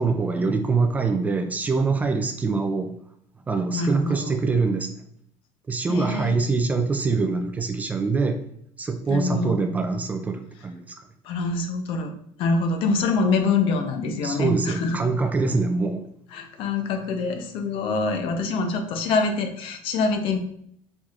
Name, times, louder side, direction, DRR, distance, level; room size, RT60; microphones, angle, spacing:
voice 1, 0.0-3.0 3.5-4.9 5.7-8.4 8.8-11.0 14.2-16.1, right 4 dB, 15° right, 7 dB, 0.3 m, -24 dB
voice 2, 3.7-4.4 5.9-6.4 9.1-9.6 11.2-15.0 16.3-20.4, left 3 dB, 45° left, 6 dB, 0.6 m, -25 dB
4.6 x 4.1 x 2.4 m, 0.68 s
cardioid pair, 170°, 12 cm